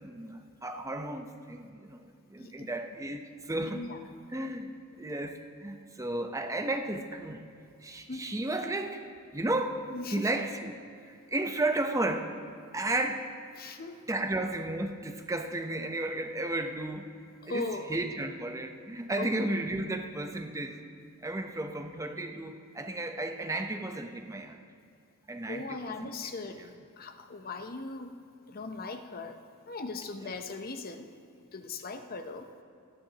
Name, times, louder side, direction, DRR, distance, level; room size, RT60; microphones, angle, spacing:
voice 1, 0.0-3.8 4.3-7.4 7.8-9.0 9.3-9.9 10.1-10.7 11.0-12.4 12.7-13.3 14.1-17.1 17.5-20.8 21.2-24.6 25.3-26.1 26.6-26.7, right 2 dB, 15° right, 5 dB, 0.8 m, -33 dB
voice 2, 9.9-10.3 13.6-14.0 17.4-18.0 19.2-19.3 25.5-28.2 28.5-29.4 29.7-31.1 31.5-32.5, left 3 dB, 40° left, 7 dB, 0.8 m, -39 dB
28.5 x 10.5 x 2.9 m, 2.4 s
head